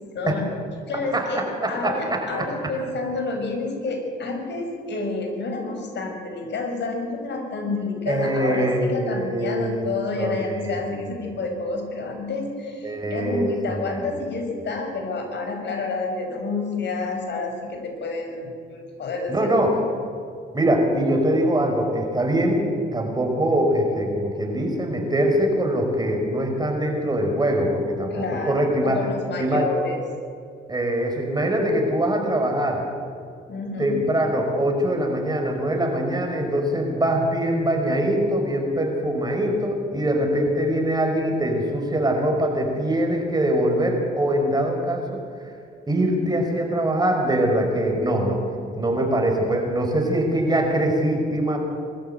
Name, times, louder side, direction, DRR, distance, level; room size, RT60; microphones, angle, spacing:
voice 1, 0.1-0.5 0.9-1.4 1.7-19.5 28.1-30.0 33.5-34.0, left 3 dB, 60° left, 3 dB, 5.7 m, -29 dB
voice 2, 1.6-2.2 8.1-9.9 10.2-10.9 12.8-13.8 19.3-19.7 20.5-22.7 22.9-29.0 29.4-29.7 30.7-32.8 33.8-45.1 45.4-45.5 45.9-48.4 48.8-51.6, right 1 dB, 20° right, 2 dB, 5.3 m, -23 dB
22.0 x 13.5 x 9.1 m, 2.3 s
cardioid pair, 90°, 20 cm